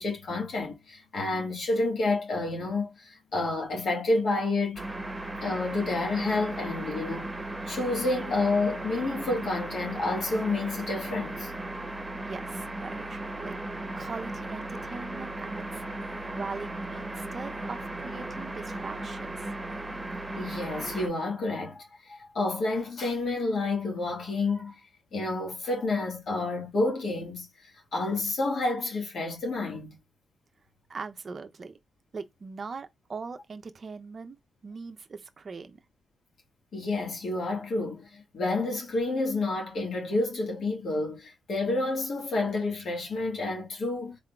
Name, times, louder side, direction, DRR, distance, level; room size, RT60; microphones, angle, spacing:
voice 1, 0.0-4.9 5.4-7.3 7.7-11.5 20.3-24.8 25.1-30.0 36.7-44.2, left 2 dB, 55° left, 1.5 m, -29 dB
sound 1, 4.8-21.1, right 2 dB, 10° right, 1.2 m, -36 dB
voice 2, 12.2-13.6 13.9-15.8 16.3-19.5 30.9-31.8 32.1-34.4 34.6-35.8, right 4 dB, 35° right, 0.6 m, -40 dB
3.7 x 3.6 x 2.3 m
cardioid pair, 120°, 0 cm